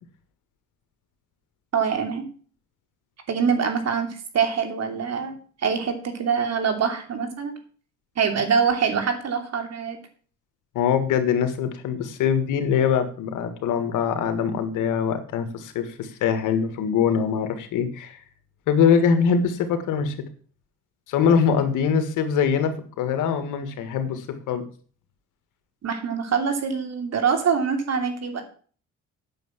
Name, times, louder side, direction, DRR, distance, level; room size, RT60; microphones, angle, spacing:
voice 1, 1.7-2.2 3.3-7.6 8.2-10.0 25.8-28.4, right 6 dB, 55° right, 6 dB, 2.9 m, -24 dB
voice 2, 10.8-18.2 18.7-20.2 21.1-24.6, left 7 dB, 90° left, 9 dB, 1.8 m, -23 dB
9.1 x 6.8 x 7.3 m, 0.43 s
cardioid pair, 90°, 30 cm